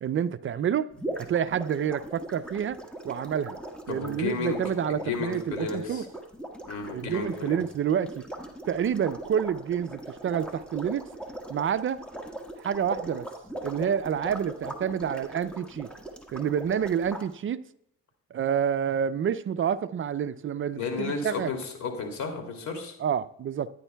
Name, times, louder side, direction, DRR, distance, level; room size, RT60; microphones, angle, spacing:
voice 1, 0.0-0.9 1.2-2.8 3.0-3.6 3.9-6.1 6.9-8.2 8.7-11.1 11.5-12.0 12.6-13.3 13.6-15.9 16.3-17.6 18.3-21.5 23.0-23.7, right 8 dB, 45° right, 0.4 m, -28 dB
sound 1, 0.9-17.2, right 1 dB, 5° left, 1.5 m, -40 dB
voice 2, 3.9-4.6 4.9-6.1 6.7-7.6 20.8-22.9, left 5 dB, 70° left, 2.7 m, -33 dB
14.5 x 9.9 x 2.3 m
cardioid pair, 90°, 30 cm